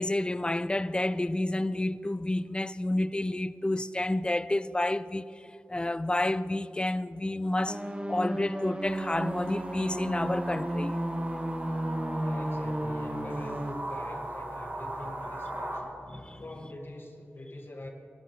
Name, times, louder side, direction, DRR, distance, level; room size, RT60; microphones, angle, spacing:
voice 1, 0.0-5.2 5.7-7.8 8.1-11.0 11.6-11.9 16.1-16.4, left 1 dB, 20° left, 0.4 m, -30 dB
sound 1, 7.7-13.7, right 1 dB, 20° right, 0.9 m, -33 dB
sound 2, 8.8-15.8, right 1 dB, 40° right, 4.2 m, -39 dB
voice 2, 12.1-15.9 16.4-17.9, left 1 dB, 45° left, 2.2 m, -44 dB
24.0 x 12.0 x 3.4 m
wide cardioid pair, 50°, 5 cm